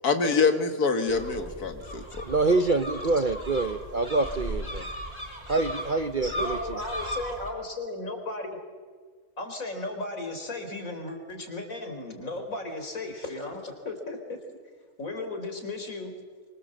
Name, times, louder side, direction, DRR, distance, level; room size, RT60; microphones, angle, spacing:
voice 1, 0.0-2.0, left 4 dB, 85° left, 7 dB, 2.1 m, -25 dB
sound 1, 1.1-7.5, equal, 15° right, 5.9 m, -37 dB
voice 2, 2.2-4.9 5.5-6.8, right 3 dB, 40° right, 9 dB, 0.8 m, -26 dB
voice 3, 6.3-8.6 9.4-14.4 15.0-16.1, left 2 dB, 60° left, 5 dB, 4.3 m, -35 dB
25.5 x 24.5 x 7.7 m, 1.5 s
omnidirectional pair, 1.6 m